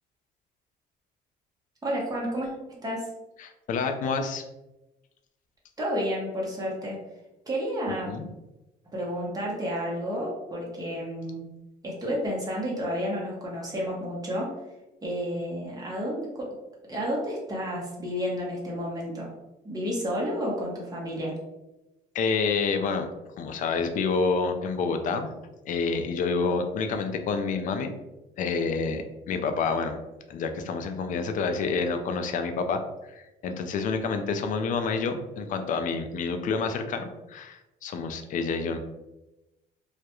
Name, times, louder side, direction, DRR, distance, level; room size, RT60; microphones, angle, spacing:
voice 1, 1.8-3.1 5.8-7.0 7.5-8.1 8.9-11.4 11.8-14.5 15.0-16.5 16.9-19.3 19.6-21.4, equal, 20° right, -4 dB, 0.7 m, -31 dB
voice 2, 3.4-4.4 8.1-8.3 22.1-23.1 23.4-25.3 25.7-27.9 28.4-30.0 30.3-32.8 33.1-38.8, left 4 dB, 50° left, 7 dB, 0.4 m, -28 dB
2.3 x 2.1 x 2.8 m, 0.99 s
cardioid pair, 110°, 17 cm